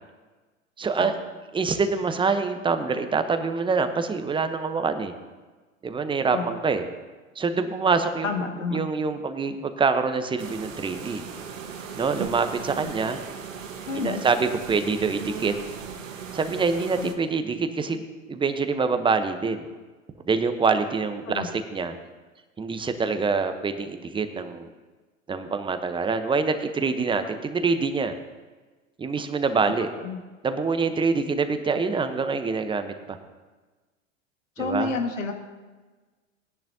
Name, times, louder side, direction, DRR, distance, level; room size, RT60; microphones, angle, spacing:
voice 1, 0.8-1.1 1.5-5.1 5.8-6.8 7.4-8.3 8.7-11.2 11.9-13.2 14.0-15.5 16.3-18.0 18.3-19.7 20.3-22.0 22.6-24.7 25.3-28.2 29.0-29.9 30.4-33.2 34.6-34.9, right 4 dB, 15° right, 8 dB, 0.9 m, -25 dB
voice 2, 8.2-8.8 13.9-14.2 17.0-17.1 21.3-21.5 30.0-30.2 34.6-35.3, left 4 dB, 75° left, 4 dB, 1.9 m, -29 dB
sound 1, 10.4-17.1, right 6 dB, 75° right, 1.4 m, -37 dB
19.0 x 10.5 x 2.8 m, 1.3 s
figure-of-eight pair, 90°, 39 cm